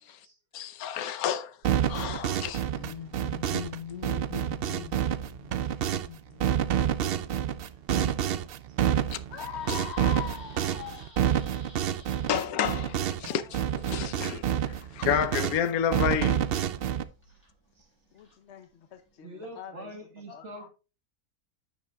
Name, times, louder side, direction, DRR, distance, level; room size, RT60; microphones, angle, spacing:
voice 1, 0.0-0.4 1.0-1.1 4.9-5.0 8.7-9.0 17.2-17.3 17.8-17.9 19.2-20.7, right 1 dB, 50° right, 1.8 m, -46 dB
voice 2, 0.5-1.6 1.9-5.6 5.9-7.6 7.9-8.1 9.1-9.2 12.3-16.5, left 9 dB, 75° left, 1.2 m, -32 dB
sound 1, 1.6-3.8 4.0-6.1 6.4-13.3 13.5-15.6 15.9-17.0, right 9 dB, 75° right, 0.5 m, -28 dB
voice 3, 2.1-3.2 9.3-11.5 14.8-14.9 18.1-19.9 20.3-20.7, left 9 dB, 60° left, 0.8 m, -43 dB
sound 2, 9.5-19.2, equal, 5° left, 4.5 m, -59 dB
10.5 x 7.2 x 2.3 m
omnidirectional pair, 1.6 m